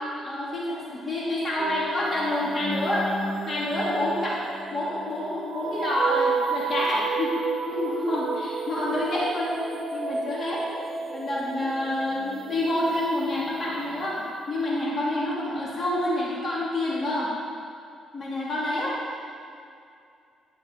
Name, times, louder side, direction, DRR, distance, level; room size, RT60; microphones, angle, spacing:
voice 1, 0.0-3.1 3.4-4.4 4.7-7.3 7.7-9.5 9.9-10.6 11.1-17.3 18.1-18.9, left 1 dB, 35° left, -6 dB, 2.8 m, -28 dB
sound 1, 1.6-14.3, right 4 dB, 55° right, 1.1 m, -32 dB
12.5 x 6.6 x 4.8 m, 2.4 s
cardioid pair, 90°, 0 cm